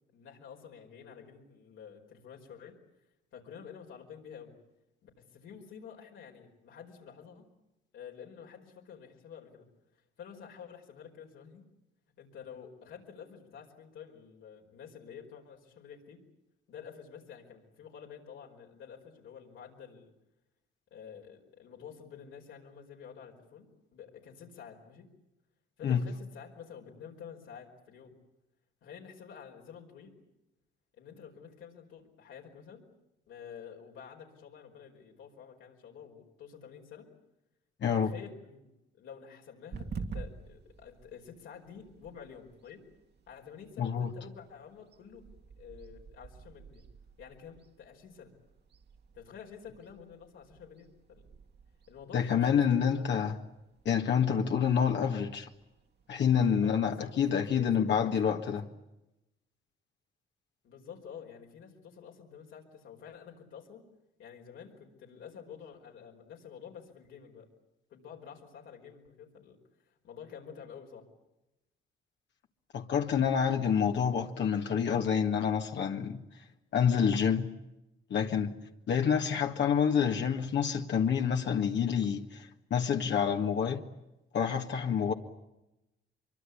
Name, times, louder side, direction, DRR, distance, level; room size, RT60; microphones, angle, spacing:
voice 1, 0.1-2.8 3.3-4.5 5.0-7.5 7.9-9.7 10.2-11.6 12.2-16.2 16.7-20.1 20.9-25.1 25.8-28.2 28.8-30.1 31.0-32.8 33.3-37.1 37.9-38.6 38.9-42.8 43.3-45.2 45.6-46.8 47.2-48.3 49.1-51.3 51.9-53.1 56.6-58.4 60.6-63.8 64.2-67.5 67.9-69.6 69.9-71.1, left 7 dB, 80° left, 5.0 m, -49 dB
voice 2, 37.8-38.1 43.8-44.1 52.1-53.4 53.9-55.5 56.1-58.6 72.7-76.2 76.7-77.5 78.1-78.5 78.9-83.8 84.3-85.1, left 7 dB, 65° left, 1.8 m, -28 dB
sound 1, 39.7-57.6, right 4 dB, 55° right, 2.2 m, -50 dB
24.5 x 23.5 x 8.6 m
cardioid pair, 90°, 20 cm